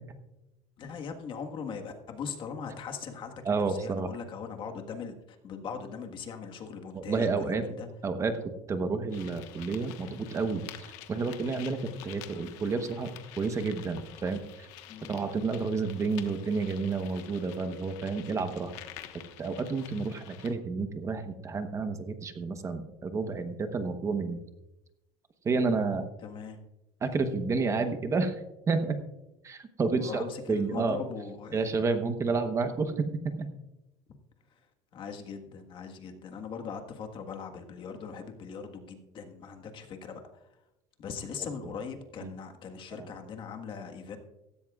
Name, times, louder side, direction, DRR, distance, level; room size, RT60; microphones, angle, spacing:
voice 1, 0.8-5.1 5.4-7.9 14.9-15.2 26.2-26.6 29.9-31.7 34.9-40.5 41.0-44.2, left 6 dB, 40° left, 4 dB, 1.5 m, -40 dB
voice 2, 3.4-4.1 6.9-7.6 8.0-8.3 8.7-13.1 13.4-14.7 15.1-18.7 19.4-24.4 25.4-26.0 27.0-28.3 28.7-28.9 29.4-31.0 31.5-33.5 42.2-42.3 43.0-43.1, right 4 dB, 25° right, 8 dB, 1.0 m, -30 dB
sound 1, 9.1-20.5, left 13 dB, 75° left, 1.3 m, -48 dB
16.0 x 15.0 x 2.4 m, 0.94 s
cardioid pair, 150°, 12 cm